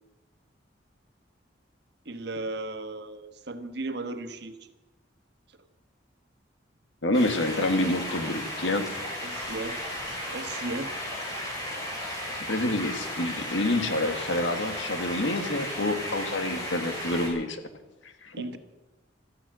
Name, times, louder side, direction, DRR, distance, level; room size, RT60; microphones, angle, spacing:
voice 1, 2.0-4.6 9.2-9.8 10.3-11.0 18.3-18.6, right 2 dB, 60° right, 8 dB, 1.3 m, -35 dB
voice 2, 7.0-8.9 12.5-17.6 18.2-18.5, left 1 dB, 90° left, 7 dB, 1.8 m, -27 dB
sound 1, 7.1-17.3, left 1 dB, 20° left, 7.1 m, -35 dB
15.5 x 14.0 x 6.2 m, 1.1 s
head